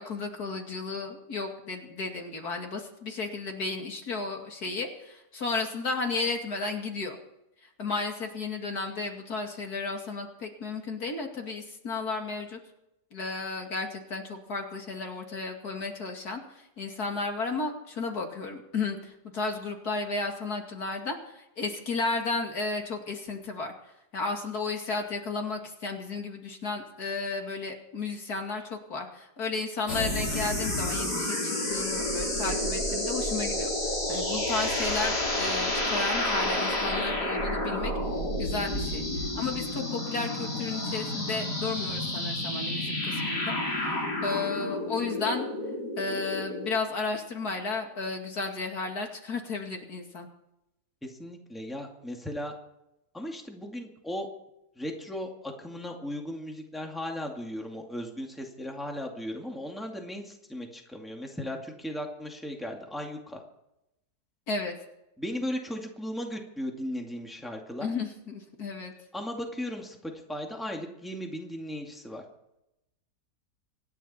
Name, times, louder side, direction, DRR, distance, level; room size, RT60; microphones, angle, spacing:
voice 1, 0.0-7.2 7.8-12.6 13.1-23.7 24.1-33.7 34.1-37.9 38.4-39.0 39.4-45.5 46.0-50.3 64.5-64.7 67.8-68.9, left 3 dB, 65° left, 3 dB, 2.8 m, -33 dB
sound 1, 29.9-46.7, left 1 dB, 85° left, 4.5 m, -30 dB
voice 2, 51.0-52.5 53.1-54.3 54.8-63.4 65.2-67.9 69.1-72.2, equal, ahead, 1 dB, 2.2 m, -36 dB
26.0 x 10.5 x 4.3 m, 0.86 s
omnidirectional pair, 1.7 m